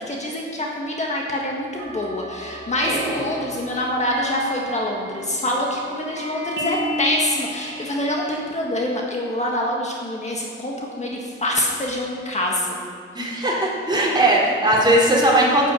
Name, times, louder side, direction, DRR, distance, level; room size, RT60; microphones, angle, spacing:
voice 1, 0.1-12.8, left 1 dB, 35° left, -1 dB, 1.6 m, -25 dB
sound 1, 1.8-8.4, equal, 60° right, 2.2 m, -33 dB
voice 2, 2.8-3.2 13.1-15.7, right 1 dB, 20° right, -4 dB, 3.5 m, -19 dB
9.9 x 8.3 x 7.6 m, 2.5 s
cardioid pair, 100°, 21 cm